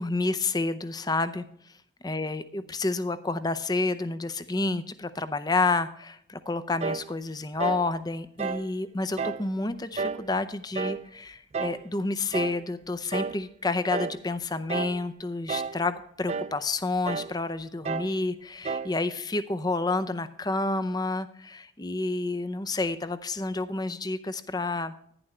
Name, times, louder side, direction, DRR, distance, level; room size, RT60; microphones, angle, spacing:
voice 1, 0.0-1.4 2.0-24.9, left 3 dB, 20° left, 11 dB, 0.6 m, -29 dB
sound 1, 6.8-7.1 7.6-7.9 8.4-8.7 9.2-9.5 10.0-10.3 10.7-11.1 11.5-11.8 12.3-12.6 13.1-13.4 13.9-14.2 14.7-15.0 15.5-15.8 16.3-16.6 17.1-17.4 17.9-18.2 18.7-19.0, right 5 dB, 35° right, 0.4 m, -31 dB
11.0 x 10.0 x 3.3 m, 0.67 s
head